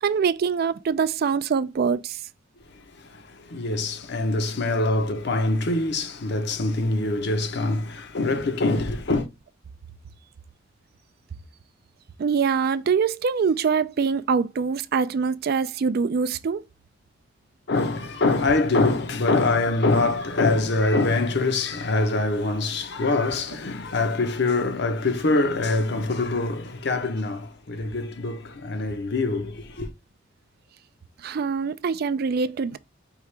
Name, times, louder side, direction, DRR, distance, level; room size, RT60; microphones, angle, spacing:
voice 1, 0.0-2.2 12.2-16.6 31.2-32.8, right 5 dB, 55° right, 0.4 m, -24 dB
voice 2, 3.0-9.3 17.7-29.9, left 2 dB, 60° left, 0.7 m, -24 dB
4.7 x 2.8 x 3.2 m
head